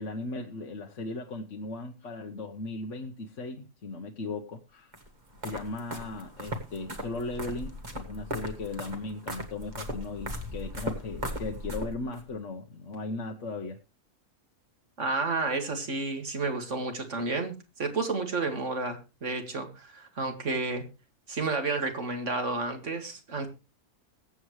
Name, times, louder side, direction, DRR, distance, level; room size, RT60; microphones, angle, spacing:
voice 1, 0.0-4.9 5.4-13.8, left 2 dB, 55° left, 1.3 m, -37 dB
sound 1, 4.9-12.2, equal, 30° right, 1.7 m, -38 dB
voice 2, 15.0-20.9 21.3-23.5, right 3 dB, 50° right, 2.4 m, -31 dB
22.0 x 8.2 x 3.1 m
omnidirectional pair, 1.6 m